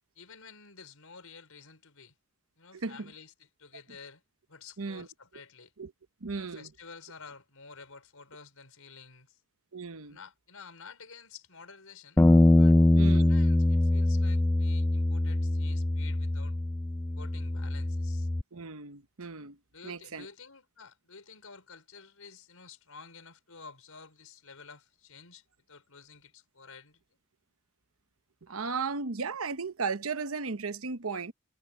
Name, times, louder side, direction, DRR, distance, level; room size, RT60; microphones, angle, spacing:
voice 1, 0.1-2.1 2.6-4.2 4.5-5.7 6.3-9.4 10.1-12.2 12.6-12.8 13.1-16.6 17.1-18.3 19.7-27.0, left 5 dB, 85° left, 5.1 m, -51 dB
voice 2, 2.7-3.1 4.8-5.1 5.8-5.9 6.2-6.7 9.7-10.2 12.9-13.3 18.5-19.6 19.8-20.3 28.4-31.3, right 4 dB, 80° right, 1.0 m, -35 dB
Bass guitar, 12.2-18.4, left 1 dB, 10° left, 0.3 m, -23 dB
head